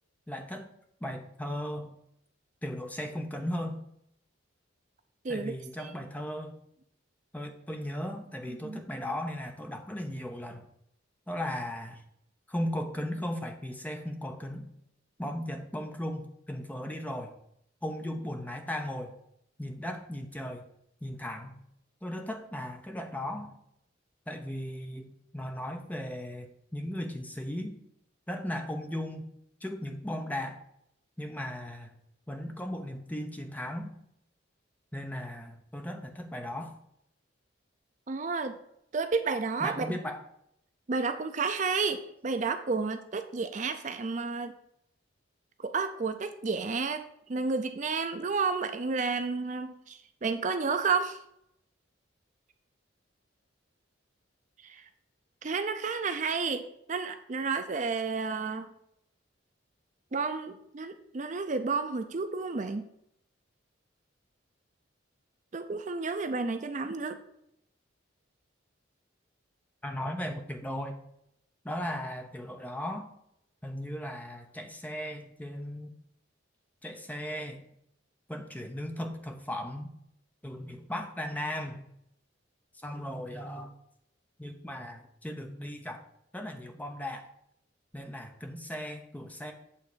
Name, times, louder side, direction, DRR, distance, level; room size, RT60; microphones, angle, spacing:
voice 1, 0.3-0.7 1.0-1.9 2.6-3.8 5.3-6.6 7.3-10.7 11.3-12.0 12.5-14.7 15.2-17.3 17.8-19.2 19.6-20.7 21.0-21.6 22.0-23.6 24.3-27.8 28.3-29.3 29.6-30.6 31.2-31.9 32.3-33.9 34.9-36.7 39.6-40.2 69.8-71.0 71.6-73.1 73.6-75.9 76.8-77.7 78.3-79.9 80.4-81.9 82.8-83.7 84.4-86.0 86.3-87.3 87.9-89.5, left 1 dB, 10° left, 4 dB, 0.7 m, -37 dB
voice 2, 5.2-6.0 8.5-8.8 38.1-38.6 38.9-40.0 40.9-44.5 45.6-47.0 47.3-51.2 54.6-54.8 55.4-58.7 60.1-62.9 65.5-67.2, right 4 dB, 40° right, 8 dB, 0.5 m, -31 dB
8.4 x 3.8 x 6.8 m, 0.75 s
head